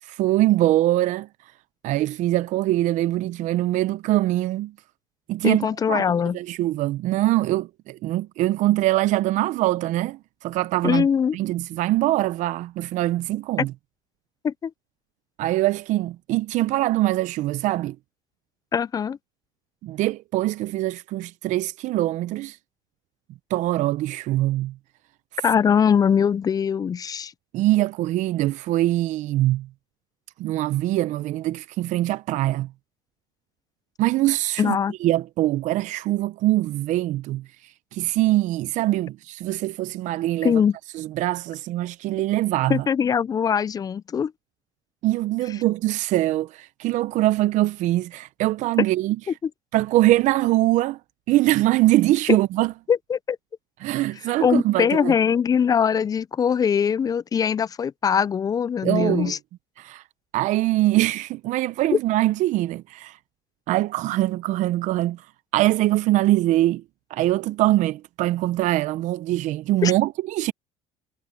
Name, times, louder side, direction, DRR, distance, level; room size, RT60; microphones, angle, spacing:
voice 1, 0.1-1.3 1.8-4.7 5.3-11.1 11.3-13.7 15.4-18.0 19.8-22.6 23.5-24.7 27.5-29.7 30.4-32.7 34.0-37.4 37.9-40.5 40.9-42.9 45.0-49.2 49.7-51.0 51.3-52.7 53.8-55.1 58.8-59.4 59.8-60.0 60.3-63.2 63.7-65.2 65.5-66.8 67.1-70.5, right 16 dB, 65° right, 0.6 m, -23 dB
voice 2, 5.4-6.4 10.8-11.4 13.6-13.7 14.4-14.7 18.7-19.2 25.4-27.3 34.6-34.9 40.4-40.8 42.7-44.3 52.9-53.4 54.4-59.4 69.8-69.9, left 7 dB, 25° left, 0.4 m, -22 dB
supercardioid pair, 100°, 14 cm